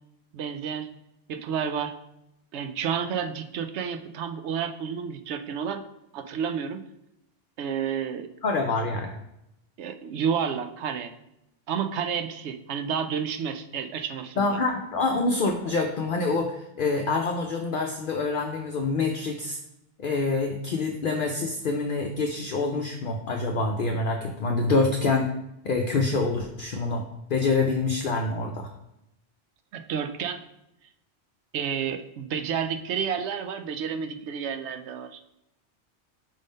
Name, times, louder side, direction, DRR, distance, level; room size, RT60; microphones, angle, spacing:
voice 1, 0.3-0.9 1.3-1.9 2.5-5.8 6.1-6.8 7.6-8.3 9.8-11.1 11.7-14.6 29.7-30.4 31.5-35.2, right 7 dB, 80° right, 8 dB, 0.9 m, -30 dB
voice 2, 8.4-9.1 14.4-19.6 20.0-25.4 25.6-27.0 27.3-28.7, left 3 dB, 55° left, 3 dB, 0.7 m, -26 dB
5.4 x 3.6 x 5.2 m, 0.84 s
omnidirectional pair, 1.2 m